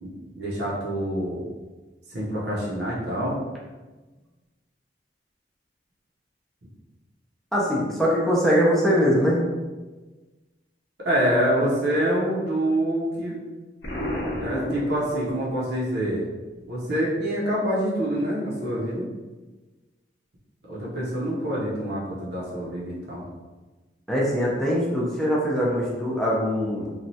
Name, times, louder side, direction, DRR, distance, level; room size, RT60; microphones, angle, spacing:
voice 1, 0.0-1.5 2.1-3.4 11.0-13.4 14.4-16.3 16.7-19.1 20.7-23.3, right 1 dB, 65° right, -5 dB, 0.7 m, -26 dB
voice 2, 7.5-9.4 24.1-26.9, equal, ahead, -5 dB, 0.5 m, -22 dB
Explosion, 13.8-15.7, left 1 dB, 75° left, 0.6 m, -31 dB
3.1 x 2.2 x 2.7 m, 1.2 s
head